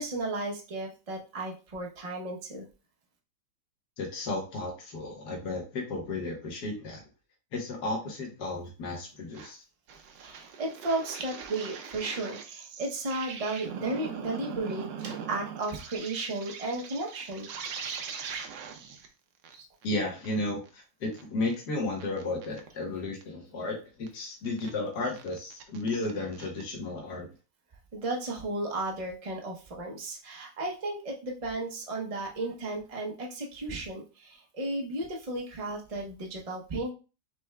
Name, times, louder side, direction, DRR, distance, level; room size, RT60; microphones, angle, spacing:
voice 1, 0.0-2.7 10.2-17.5 19.5-19.6 27.9-36.9, right 2 dB, 50° right, -1 dB, 0.4 m, -34 dB
voice 2, 4.0-7.0 7.5-9.6 19.8-27.3, left 2 dB, 70° left, 0 dB, 1.7 m, -33 dB
sound 1, 9.3-9.5 9.9-19.1 19.4-19.5 19.8-19.9 20.2-20.3 20.7-20.8 21.1-21.6 22.0-22.7 23.2-23.3 24.1-24.2 24.4-24.7 25.1-26.6, right 7 dB, 85° right, 1.4 m, -41 dB
5.9 x 3.3 x 2.2 m, 0.33 s
omnidirectional pair, 1.9 m